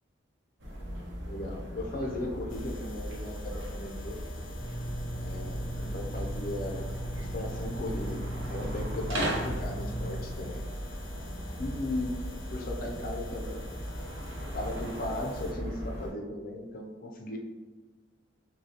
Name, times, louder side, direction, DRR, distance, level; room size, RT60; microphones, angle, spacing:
sound 1, 0.6-16.1, equal, 75° right, 0.8 m, -37 dB
voice 1, 1.2-4.2 5.1-6.9 7.2-8.2 8.5-10.6 11.6-12.2 12.5-13.6 14.5-17.4, left 1 dB, 50° left, 1 dB, 0.5 m, -37 dB
sound 2, 2.5-15.5, left 2 dB, 85° left, 0.6 m, -48 dB
sound 3, 4.6-10.2, right 1 dB, 30° right, 0.9 m, -37 dB
6.2 x 2.3 x 2.8 m, 1.3 s
head